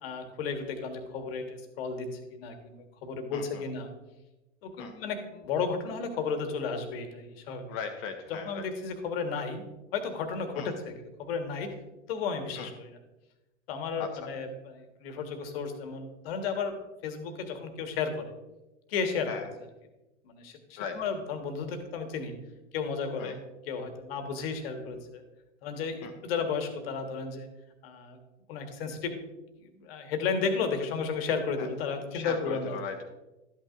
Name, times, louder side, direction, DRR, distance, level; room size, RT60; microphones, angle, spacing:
voice 1, 0.0-3.9 4.6-7.7 8.4-9.6 9.9-11.7 12.1-12.9 13.7-16.8 17.0-18.3 18.9-19.3 20.2-22.3 22.7-23.4 23.7-25.2 25.6-27.5 27.8-28.2 28.5-29.1 29.6-32.8, left 5 dB, 55° left, 6 dB, 1.5 m, -33 dB
voice 2, 3.3-3.6 4.8-4.9 7.7-8.7 10.5-10.8 12.6-12.7 14.0-14.3 19.3-19.5 20.8-21.0 23.2-23.4 26.0-26.1 31.6-31.7 32.1-33.0, left 6 dB, 40° left, 5 dB, 1.0 m, -38 dB
12.5 x 8.9 x 2.6 m, 1.0 s
figure-of-eight pair, 90°, 36 cm